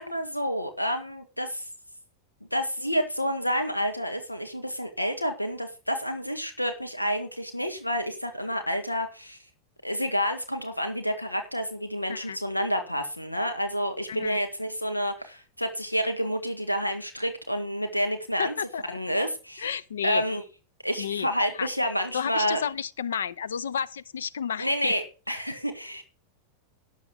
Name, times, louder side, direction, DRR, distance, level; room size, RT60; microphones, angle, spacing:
voice 1, 0.0-1.7 2.5-9.4 9.8-18.5 18.9-19.7 20.0-20.4 20.8-22.6 24.6-26.0, equal, 85° left, 1.7 m, -29 dB
voice 2, 18.4-19.0 19.6-20.2 21.0-21.3 21.5-21.7 22.1-24.9, left 7 dB, 65° left, 0.6 m, -32 dB
12.0 x 7.3 x 5.1 m
figure-of-eight pair, 90°, 0 cm